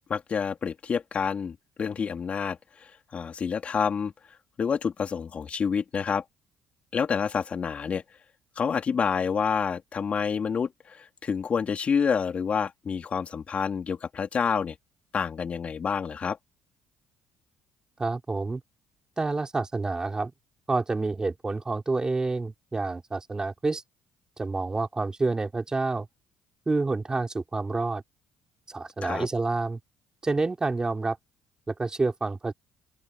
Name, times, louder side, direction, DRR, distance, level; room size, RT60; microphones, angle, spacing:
voice 1, 0.1-4.1 4.6-6.2 6.9-8.0 8.6-14.7 15.1-16.4 29.0-29.3, left 6 dB, 45° left, 3.2 m, -28 dB
voice 2, 18.0-18.6 19.2-20.3 20.7-23.8 24.4-26.1 26.7-28.0 28.7-29.8 30.2-31.2 31.7-32.5, right 3 dB, 25° right, 4.8 m, -28 dB
open air
supercardioid pair, 65°, 3 cm